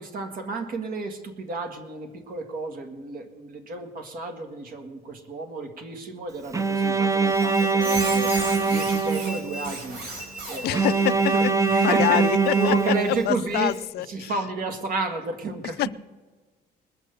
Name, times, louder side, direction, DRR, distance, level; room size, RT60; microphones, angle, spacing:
voice 1, 0.0-8.3 8.7-10.0 10.5-10.8 11.3-13.7 14.0-15.9, right 3 dB, 55° right, 6 dB, 1.9 m, -32 dB
Bowed string instrument, 6.5-9.7 10.7-13.7, right 4 dB, 20° right, 0.6 m, -23 dB
Squeak, 7.3-13.2, right 2 dB, 90° right, 4.2 m, -36 dB
voice 2, 10.6-11.3 11.8-14.3 15.8-15.9, left 16 dB, 75° left, 18 dB, 0.4 m, -26 dB
20.5 x 6.9 x 6.7 m, 1.4 s
cardioid pair, 110°, 17 cm